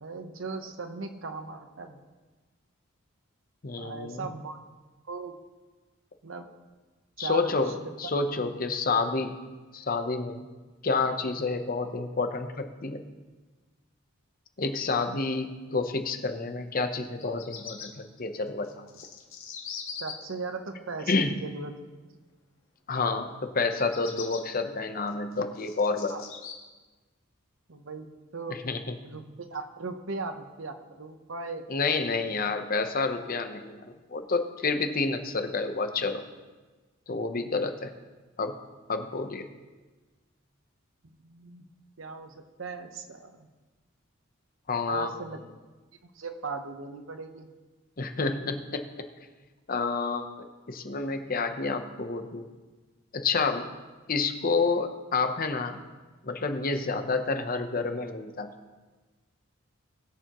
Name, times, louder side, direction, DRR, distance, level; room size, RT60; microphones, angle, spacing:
voice 1, 0.0-2.0 3.8-4.6 5.1-5.3 6.2-6.5 7.2-7.9 20.0-21.7 26.1-26.2 27.7-28.1 28.3-28.6 29.0-31.6 32.2-32.4 41.0-41.6 42.0-43.5 44.9-45.4 46.0-47.5, right 4 dB, 75° right, 7 dB, 0.9 m, -38 dB
voice 2, 3.6-4.3 7.2-9.4 9.7-10.5 10.8-13.0 14.6-18.9 21.1-21.3 22.9-26.3 28.6-28.9 31.7-33.8 34.1-36.2 37.1-37.9 38.4-38.6 38.9-39.5 44.7-45.1 48.0-48.8 49.7-52.5 53.1-53.7 54.1-55.8 56.2-58.5, left 4 dB, 45° left, 7 dB, 0.8 m, -29 dB
Bird vocalization bird call bird song, 17.0-17.9 18.6-20.1 23.7-24.4 25.1-26.5, left 7 dB, 75° left, 1.6 m, -41 dB
20.5 x 6.9 x 3.0 m, 1.3 s
head